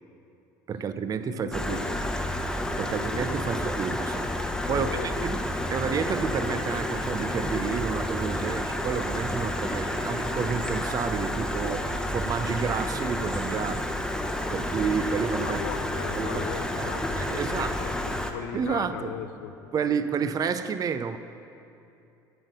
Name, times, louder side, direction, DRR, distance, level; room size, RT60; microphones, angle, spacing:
voice 1, 0.7-1.8 2.8-4.3 4.7-4.9 5.2-5.4 5.7-13.9 14.5-15.6 16.2-16.5 16.8-17.8 18.5-19.1 19.7-21.2, right 6 dB, 35° right, 10 dB, 0.6 m, -30 dB
voice 2, 1.3-2.0 2.9-3.6 4.7-5.3 15.4-19.5, left 9 dB, 80° left, 9 dB, 0.5 m, -38 dB
Stream, 1.5-18.3, left 1 dB, 5° left, 1.0 m, -30 dB
sound 1, 4.3-19.8, left 3 dB, 40° left, 1.5 m, -48 dB
sound 2, 6.6-18.3, right 3 dB, 75° right, 2.1 m, -50 dB
8.0 x 7.7 x 6.6 m, 2.7 s
hypercardioid pair, 70°, 10 cm